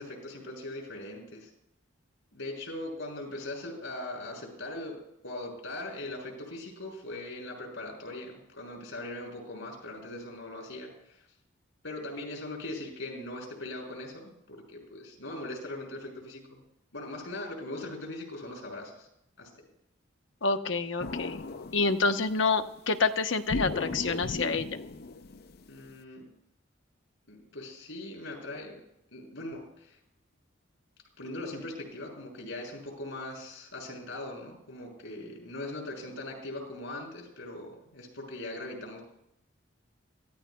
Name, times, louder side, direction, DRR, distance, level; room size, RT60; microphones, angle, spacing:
voice 1, 0.0-1.5 2.3-11.2 11.8-16.6 16.9-19.1 19.4-19.7 25.7-26.3 27.3-30.0 31.2-39.0, left 2 dB, 90° left, -1 dB, 6.2 m, -40 dB
voice 2, 20.4-21.4 21.7-24.7, left 4 dB, 70° left, 7 dB, 1.0 m, -27 dB
sound 1, 21.0-22.5 23.5-25.9, left 3 dB, 55° left, 0.5 m, -36 dB
26.5 x 15.5 x 2.3 m, 0.77 s
head